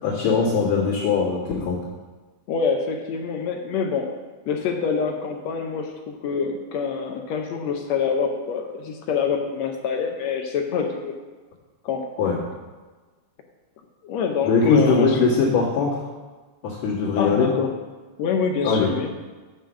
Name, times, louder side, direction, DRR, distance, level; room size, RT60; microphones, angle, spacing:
voice 1, 0.0-1.8 12.2-12.4 14.4-16.0 16.6-17.5 18.6-18.9, left 5 dB, 85° left, -9 dB, 3.3 m, -20 dB
voice 2, 2.5-4.1 4.5-11.1 11.8-12.1 14.0-15.2 17.2-17.7 18.2-19.1, left 6 dB, 70° left, 3 dB, 1.7 m, -26 dB
7.6 x 5.1 x 7.1 m, 1.3 s
omnidirectional pair, 3.6 m